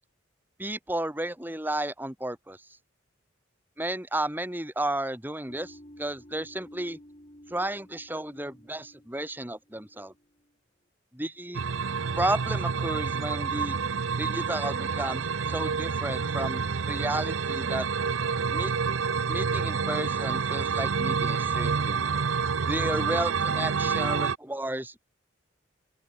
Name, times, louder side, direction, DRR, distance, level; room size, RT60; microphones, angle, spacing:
voice 1, 0.6-2.6 3.8-7.0 7.5-10.1 11.1-11.6 12.2-13.8 14.2-17.9 18.5-18.7 19.3-22.0 22.6-25.0, right 1 dB, 10° right, 2.1 m, -32 dB
sound 1, 5.5-10.5, equal, 30° left, 7.3 m, -53 dB
sound 2, 11.5-24.4, right 5 dB, 85° right, 0.7 m, -28 dB
open air
head